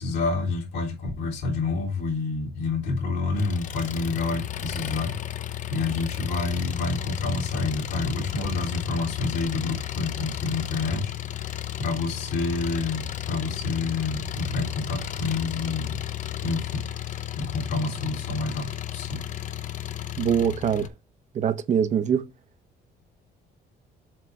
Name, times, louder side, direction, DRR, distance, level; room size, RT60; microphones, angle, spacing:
voice 1, 0.0-16.9 17.3-19.2, left 3 dB, 80° left, 3.1 m, -29 dB
Engine, 3.4-20.9, left 12 dB, 45° left, 0.5 m, -33 dB
voice 2, 20.2-20.9 21.3-22.2, right 8 dB, 40° right, 0.6 m, -23 dB
7.6 x 3.2 x 5.6 m
cardioid pair, 155°, 18 cm